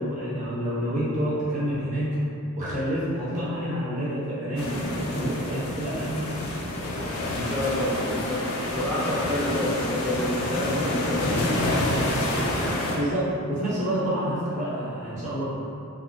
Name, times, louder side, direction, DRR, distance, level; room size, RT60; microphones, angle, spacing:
voice 1, 0.0-2.1 2.5-6.3 11.6-11.9 12.6-15.5, equal, 35° right, -10 dB, 0.9 m, -28 dB
sound 1, 4.6-13.0, left 1 dB, 75° left, 0.5 m, -28 dB
voice 2, 7.5-11.5, left 1 dB, ahead, -11 dB, 0.5 m, -28 dB
3.7 x 2.3 x 2.3 m, 2.7 s
head